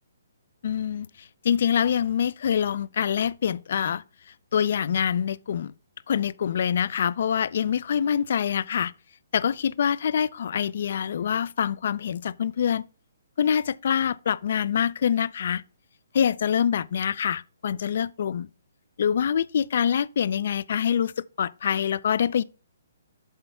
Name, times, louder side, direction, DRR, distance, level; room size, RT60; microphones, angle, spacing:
voice 1, 0.6-4.0 4.5-5.7 6.1-8.9 9.3-12.9 13.4-15.6 16.1-18.5 19.0-22.4, left 8 dB, 60° left, 0.4 m, -25 dB
7.9 x 3.3 x 5.9 m
hypercardioid pair, 155°, 0 cm